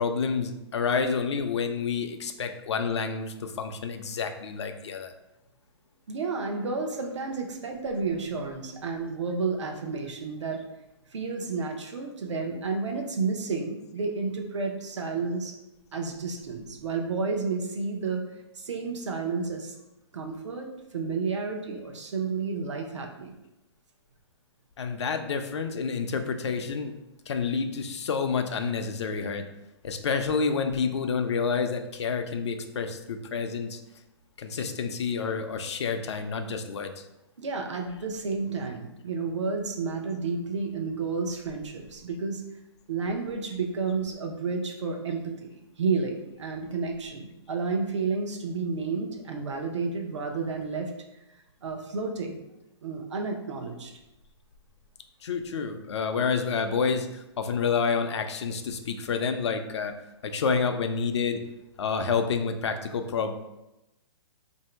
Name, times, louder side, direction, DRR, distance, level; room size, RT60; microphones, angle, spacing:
voice 1, 0.0-5.1 24.8-27.0 27.3-29.4 29.8-33.8 34.4-36.9 55.2-59.9 60.2-61.4 61.8-63.3, left 5 dB, 75° left, 6 dB, 0.5 m, -29 dB
voice 2, 6.1-10.6 11.1-15.5 15.9-18.2 18.6-19.7 20.1-20.7 20.9-23.3 37.4-42.4 42.9-50.9 51.6-52.4 52.8-53.9, right 4 dB, 90° right, 3 dB, 0.7 m, -31 dB
2.9 x 2.7 x 4.4 m, 0.95 s
hypercardioid pair, 165°, 15 cm